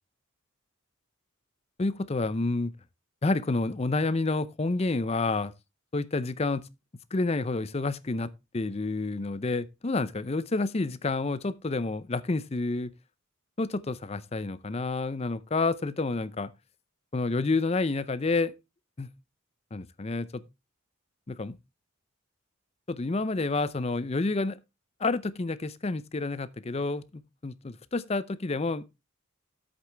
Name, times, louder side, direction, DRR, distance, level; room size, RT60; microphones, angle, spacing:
voice 1, 1.8-2.7 3.2-5.5 5.9-6.7 7.1-12.9 13.6-16.5 17.1-18.5 19.0-19.1 19.7-20.4 21.3-21.6 22.9-24.6 25.0-28.8, left 3 dB, 30° left, 0.5 m, -29 dB
9.5 x 8.1 x 3.3 m
head